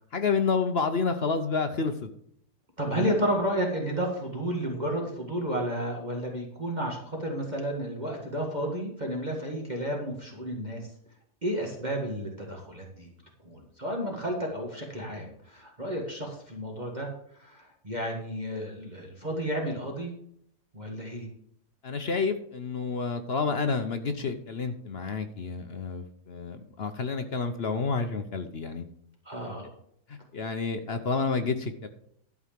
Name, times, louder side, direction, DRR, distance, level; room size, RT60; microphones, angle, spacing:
voice 1, 0.1-2.1 2.9-3.1 21.8-28.8 30.1-31.9, left 4 dB, 50° left, 7 dB, 0.8 m, -29 dB
voice 2, 2.8-10.9 11.4-13.1 13.4-17.1 17.3-20.1 20.7-21.3 29.3-29.7, equal, 25° right, -1 dB, 1.9 m, -32 dB
12.0 x 4.7 x 7.4 m, 0.68 s
omnidirectional pair, 1.7 m